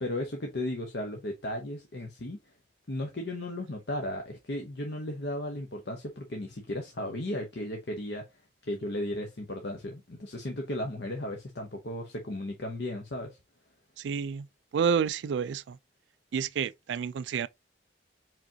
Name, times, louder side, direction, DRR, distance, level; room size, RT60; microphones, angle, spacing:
voice 1, 0.0-2.4 2.9-8.2 8.6-13.4, left 1 dB, 60° left, 0.8 m, -35 dB
voice 2, 14.0-14.5 14.7-15.8 16.3-17.5, right 7 dB, 75° right, 0.3 m, -29 dB
4.8 x 3.7 x 2.8 m
head